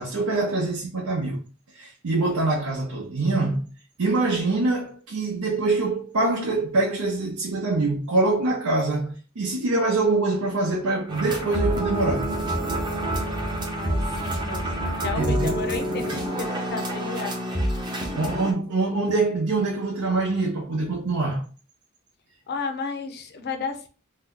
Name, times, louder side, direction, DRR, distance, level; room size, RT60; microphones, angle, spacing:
voice 1, 0.0-1.4 1.7-3.7 4.0-12.3 15.2-15.6 18.1-21.5, right 2 dB, 90° right, 0.7 m, -24 dB
sound 1, 11.1-18.5, right 1 dB, 20° right, 0.5 m, -27 dB
voice 2, 13.7-17.9 22.5-23.9, left 4 dB, 50° left, 0.5 m, -33 dB
2.8 x 2.1 x 3.6 m
head